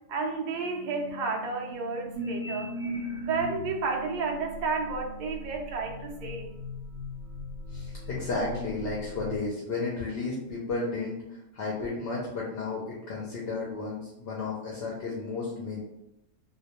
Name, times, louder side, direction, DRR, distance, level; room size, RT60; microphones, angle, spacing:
voice 1, 0.1-6.5, right 4 dB, 80° right, 0 dB, 0.4 m, -32 dB
sound 1, 2.1-3.8 4.5-9.4, left 1 dB, 50° right, 0.7 m, -38 dB
voice 2, 7.7-11.2 11.5-15.8, left 3 dB, 60° left, -4 dB, 0.7 m, -33 dB
2.2 x 2.1 x 2.8 m, 0.88 s
omnidirectional pair, 1.3 m